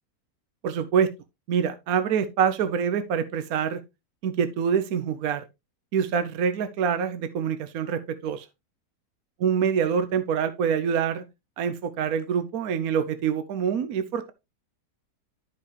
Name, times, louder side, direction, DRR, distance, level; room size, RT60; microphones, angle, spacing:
voice 1, 0.6-1.1 1.5-3.8 4.2-5.4 5.9-8.5 9.4-11.2 11.6-14.3, right 7 dB, 65° right, 1.1 m, -25 dB
11.5 x 5.5 x 3.2 m
omnidirectional pair, 1.8 m